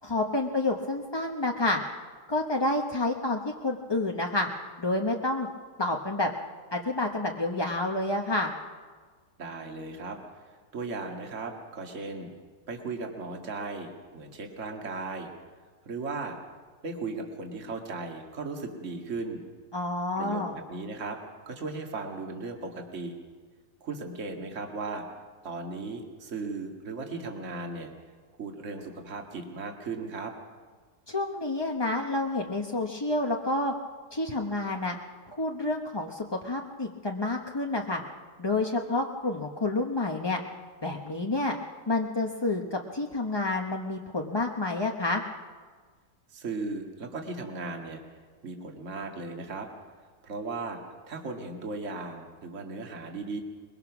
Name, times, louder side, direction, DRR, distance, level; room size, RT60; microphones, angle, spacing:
voice 1, 0.0-1.8 2.3-4.5 4.8-5.5 5.8-6.3 6.7-8.5 19.7-20.6 31.1-33.7 34.1-35.0 35.3-38.0 38.4-40.4 40.8-41.5 41.9-45.2, left 2 dB, 20° left, 1 dB, 0.6 m, -29 dB
voice 2, 9.4-10.2 10.4-12.3 12.7-15.3 15.9-16.4 16.8-19.4 20.2-21.2 21.5-23.1 23.8-25.0 25.4-27.9 28.4-30.3 46.3-48.0 48.4-49.7 50.2-50.8 51.1-53.4, right 3 dB, 45° right, 2 dB, 2.1 m, -36 dB
22.0 x 22.0 x 6.0 m, 1.5 s
omnidirectional pair, 1.9 m